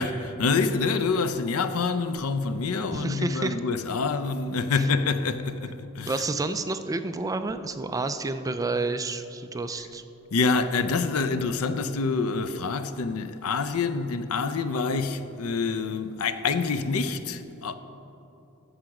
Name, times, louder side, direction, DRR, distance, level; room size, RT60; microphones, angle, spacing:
voice 1, 0.0-6.2 10.3-17.7, left 4 dB, 70° left, 0.5 m, -26 dB
voice 2, 2.9-3.6 4.7-4.8 6.1-10.0, right 3 dB, 15° right, 0.3 m, -29 dB
14.0 x 5.0 x 5.9 m
head